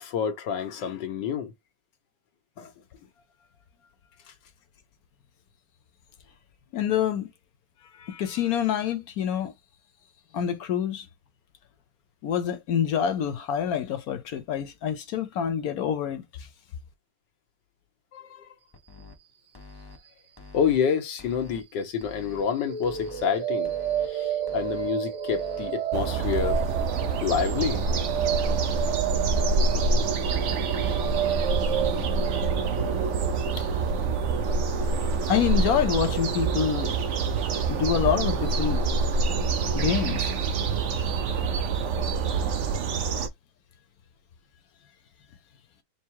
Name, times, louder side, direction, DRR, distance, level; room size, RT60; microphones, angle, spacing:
voice 1, 0.0-1.5 2.6-2.7 18.1-18.5 20.5-23.7 24.1-26.6 27.2-27.9, left 7 dB, 85° left, 1.6 m, -28 dB
voice 2, 6.7-7.3 8.0-9.5 10.3-11.1 12.2-16.2 35.3-37.0 37.7-38.8 39.7-40.3, left 9 dB, 65° left, 1.1 m, -26 dB
sound 1, 18.7-19.2 19.5-20.0 20.4-20.8 21.2-21.6 22.0-22.4 22.8-23.3 23.6-24.1 24.5-24.9 25.3-25.7 26.1-26.5 26.9-27.4 27.8-28.2 28.6-29.0 29.4-29.8 30.2-30.6 31.0-31.5 31.9-32.3 32.7-33.1 33.5-33.9 34.3-34.4 34.7-34.8 35.1-35.2 35.5-35.6 35.9-36.0 36.4-36.5 36.8-36.9 37.2-37.3 37.6-37.7 38.0-38.1, left 4 dB, 35° left, 0.3 m, -46 dB
sound 2, 22.6-36.6, right 11 dB, 85° right, 2.2 m, -32 dB
sound 3, 25.9-43.3, right 4 dB, 60° right, 0.8 m, -26 dB
4.5 x 2.0 x 4.5 m
omnidirectional pair, 1.9 m